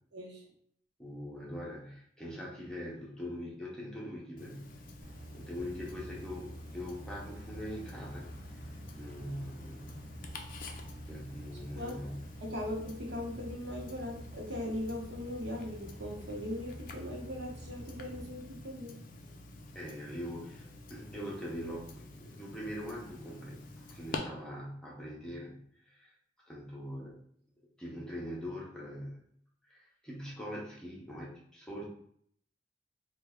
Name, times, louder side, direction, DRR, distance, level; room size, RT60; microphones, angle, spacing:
voice 1, 0.1-0.4 11.7-12.1 12.4-18.9 31.7-31.8, left 1 dB, 70° right, -2 dB, 0.9 m, -39 dB
voice 2, 1.0-4.8 5.3-8.3 8.6-10.0 11.0-12.3 19.7-26.1 26.5-27.2 27.8-29.2 29.6-31.8, equal, 5° left, -5 dB, 0.6 m, -42 dB
Tick-tock, 4.4-24.2, left 2 dB, 50° left, 0.4 m, -49 dB
sound 1, 5.0-18.3, equal, 35° right, 0.4 m, -48 dB
3.2 x 2.2 x 3.4 m, 0.65 s
head